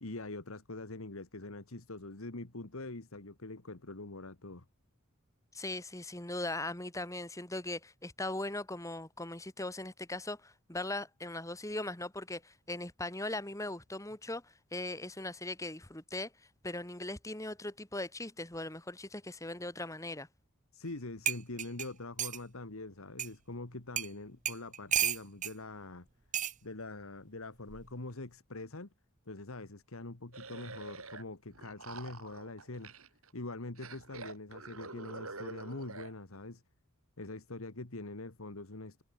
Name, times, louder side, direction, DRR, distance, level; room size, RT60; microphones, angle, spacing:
voice 1, 0.0-4.6 20.7-26.1 26.6-28.9 29.3-32.9 33.3-36.6 37.2-39.0, left 2 dB, 70° left, 1.7 m, -44 dB
voice 2, 5.5-16.3 16.6-20.3, left 2 dB, 15° left, 2.0 m, -39 dB
sound 1, 20.9-21.0 21.3-22.4 23.2-23.3 24.0-24.1 24.5-25.5 26.3-26.6 27.7-28.0, right 10 dB, 35° right, 1.0 m, -33 dB
sound 2, 30.3-31.2 31.5-33.3 33.8-36.1, right 3 dB, 75° right, 7.6 m, -46 dB
head